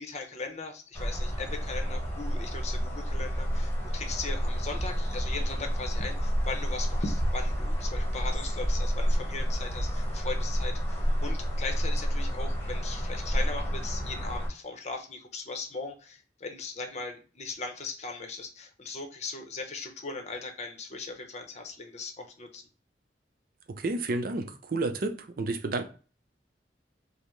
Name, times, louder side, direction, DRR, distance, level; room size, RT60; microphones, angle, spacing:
voice 1, 0.0-22.6, left 3 dB, 40° left, 0.7 m, -38 dB
sound 1, 0.9-14.5, equal, 15° left, 1.0 m, -29 dB
voice 2, 23.7-25.9, right 2 dB, 55° right, 0.5 m, -31 dB
5.3 x 2.1 x 3.0 m
head